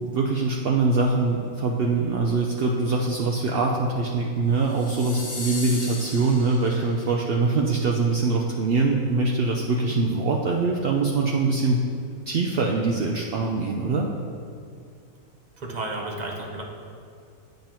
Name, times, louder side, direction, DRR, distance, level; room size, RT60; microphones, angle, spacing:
voice 1, 0.0-11.8 12.3-14.1, right 3 dB, 85° right, -1 dB, 0.5 m, -23 dB
sound 1, 4.6-7.1, left 2 dB, 35° left, 0.8 m, -37 dB
voice 2, 15.6-16.6, right 2 dB, 40° right, 0 dB, 0.6 m, -32 dB
8.9 x 5.4 x 2.9 m, 2.3 s
omnidirectional pair, 1.6 m